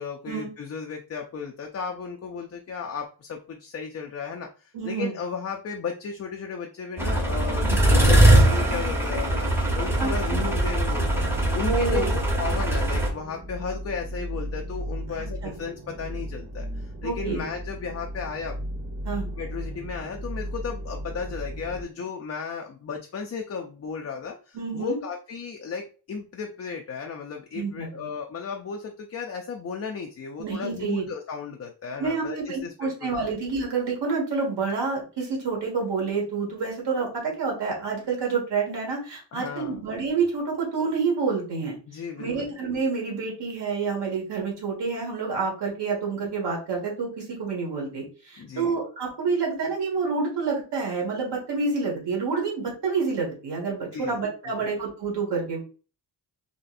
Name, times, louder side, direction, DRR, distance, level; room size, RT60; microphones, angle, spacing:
voice 1, 0.0-9.5 9.8-11.2 11.5-18.5 19.4-33.3 39.3-39.9 41.9-42.5 48.4-48.8 53.9-54.2 54.6-54.7, left 5 dB, 35° left, 2 dB, 0.4 m, -35 dB
voice 2, 4.7-5.1 7.6-7.8 10.0-10.5 11.6-12.1 15.4-15.5 17.0-17.4 19.0-19.3 24.5-25.0 27.5-28.1 30.4-31.0 32.0-41.8 42.2-55.6, right 4 dB, 65° right, -1 dB, 1.6 m, -28 dB
sound 1, 7.0-13.1, right 1 dB, 5° right, 0.8 m, -21 dB
sound 2, 10.5-21.8, equal, 25° right, 1.1 m, -35 dB
4.1 x 3.1 x 2.5 m, 0.36 s
wide cardioid pair, 170°, 44 cm